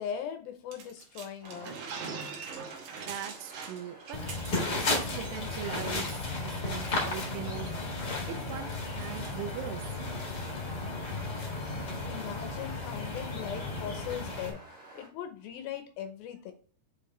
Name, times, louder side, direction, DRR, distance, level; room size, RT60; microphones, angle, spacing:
voice 1, 0.0-1.7 12.1-16.5, left 9 dB, 80° left, 2.1 m, -39 dB
sound 1, 0.7-4.9 5.2-5.4 5.7-6.1, right 5 dB, 70° right, 2.0 m, -42 dB
sound 2, 1.4-15.1, right 2 dB, 25° right, 1.5 m, -51 dB
voice 2, 3.1-10.0, right 10 dB, 90° right, 2.0 m, -41 dB
sound 3, 4.1-14.5, left 2 dB, 60° left, 1.0 m, -34 dB
6.8 x 4.9 x 3.2 m
omnidirectional pair, 5.0 m